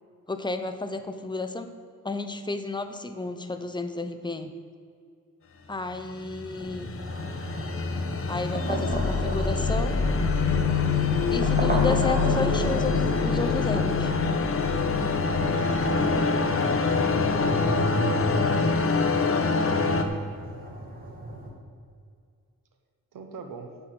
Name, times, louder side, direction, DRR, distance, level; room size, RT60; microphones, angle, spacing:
voice 1, 0.3-1.7 2.0-4.5 5.7-6.9 8.3-10.1 11.3-14.1 18.8-19.1, left 3 dB, 15° left, 7 dB, 0.6 m, -32 dB
sound 1, 5.9-20.0, left 3 dB, 40° left, 0.9 m, -26 dB
sound 2, 6.5-21.5, right 1 dB, 25° right, 1.9 m, -35 dB
sound 3, 8.9-20.3, left 6 dB, 65° left, 1.3 m, -29 dB
voice 2, 15.9-16.3 16.9-18.4 23.1-23.8, right 4 dB, 75° right, 5 dB, 1.2 m, -41 dB
9.7 x 5.9 x 7.8 m, 2.3 s
wide cardioid pair, 135°, 33 cm